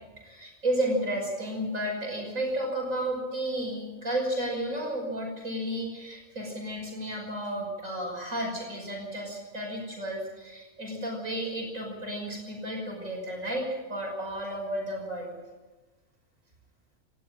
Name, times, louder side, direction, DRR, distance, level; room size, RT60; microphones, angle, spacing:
voice 1, 0.2-15.3, right 1 dB, 75° right, 1 dB, 6.4 m, -32 dB
19.0 x 15.0 x 10.0 m, 1.2 s
omnidirectional pair, 1.4 m